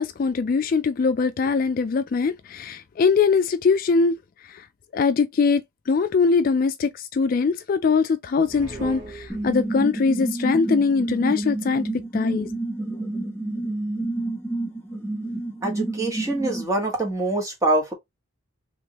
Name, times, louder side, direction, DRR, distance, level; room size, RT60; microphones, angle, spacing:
voice 1, 0.0-4.2 4.5-4.7 4.9-12.5, left 5 dB, 45° left, 0.3 m, -22 dB
Spooky Sting, 8.4-10.0, right 2 dB, 60° right, 1.5 m, -38 dB
sound 1, 9.3-16.6, right 2 dB, 10° left, 0.9 m, -29 dB
voice 2, 15.6-17.9, right 2 dB, 15° right, 1.2 m, -24 dB
3.5 x 3.0 x 2.9 m
head